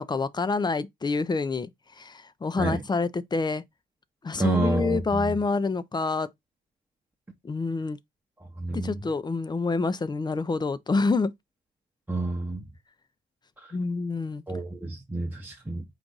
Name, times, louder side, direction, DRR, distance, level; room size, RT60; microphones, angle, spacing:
voice 1, 0.0-1.7 2.0-3.6 4.2-6.3 7.4-8.0 8.7-11.3 13.7-14.4, left 3 dB, 20° left, 0.4 m, -27 dB
voice 2, 4.4-5.4 8.6-9.1 12.1-12.7 13.6-13.7 14.5-15.8, right 2 dB, 10° right, 0.8 m, -29 dB
4.7 x 2.5 x 3.8 m
cardioid pair, 90°, 20 cm